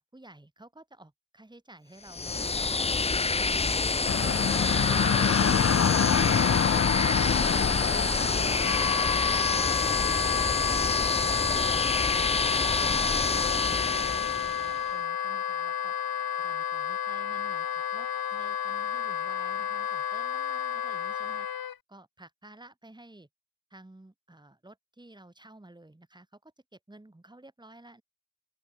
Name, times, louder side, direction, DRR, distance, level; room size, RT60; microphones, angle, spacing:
voice 1, 0.1-3.8 10.3-13.0 13.3-15.9 16.4-21.5 21.9-23.3 23.7-28.0, right 1 dB, 10° right, 3.8 m, -52 dB
sound 1, 2.1-14.8, left 4 dB, 20° left, 0.4 m, -27 dB
sound 2, 4.1-9.6, left 7 dB, 40° left, 0.8 m, -26 dB
Wind instrument woodwind instrument, 8.5-21.7, left 8 dB, 70° left, 1.4 m, -31 dB
open air
wide cardioid pair, 160°, 37 cm